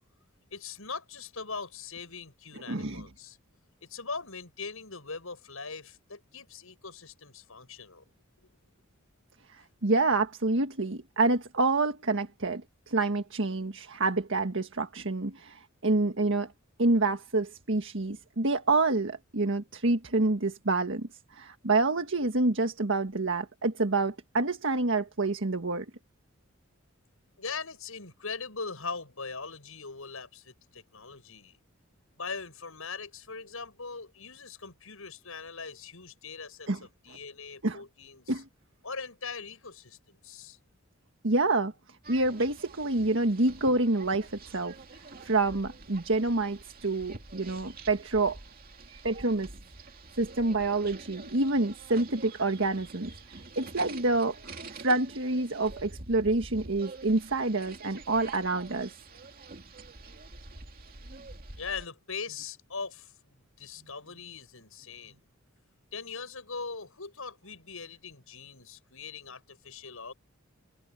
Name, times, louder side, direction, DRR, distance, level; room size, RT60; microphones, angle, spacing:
voice 1, 0.5-3.4 3.8-8.0 27.4-31.6 32.2-38.4 38.8-40.6 61.6-65.2 65.9-70.1, left 4 dB, 80° left, 6.7 m, -41 dB
voice 2, 2.7-3.1 9.8-16.5 16.8-25.9 36.7-36.8 37.6-37.8 38.3-38.4 41.2-41.7 42.1-44.7 45.2-48.4 48.9-49.5 50.2-53.1 53.6-58.9, right 2 dB, 65° right, 1.6 m, -27 dB
sound 1, 42.0-61.9, right 3 dB, 45° right, 2.6 m, -47 dB
head